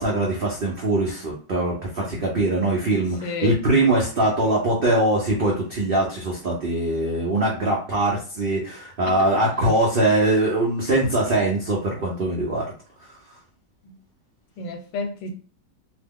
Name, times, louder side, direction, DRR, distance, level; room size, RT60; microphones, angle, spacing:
voice 1, 0.0-12.7, right 1 dB, 85° right, 0.5 m, -22 dB
voice 2, 3.2-3.6 9.2-9.3 13.8-13.9 14.6-15.3, left 4 dB, 85° left, 1.3 m, -30 dB
2.8 x 2.1 x 3.5 m
omnidirectional pair, 1.9 m